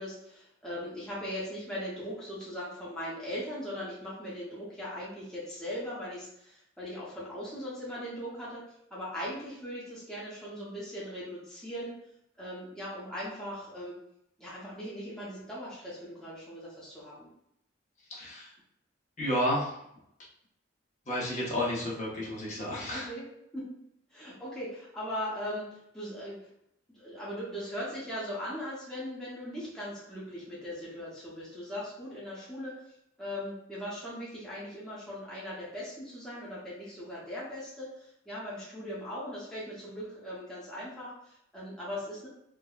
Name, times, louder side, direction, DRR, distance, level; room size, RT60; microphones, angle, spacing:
voice 1, 0.0-8.6 8.9-11.9 12.4-14.0 14.4-17.3 22.7-23.2 23.5-23.6 24.1-26.4 26.9-32.8 33.2-42.3, equal, 5° left, -9 dB, 0.7 m, -39 dB
voice 2, 18.1-18.5 19.2-19.7 21.1-23.1, equal, 40° left, -6 dB, 0.8 m, -31 dB
3.4 x 2.1 x 2.3 m, 0.76 s
head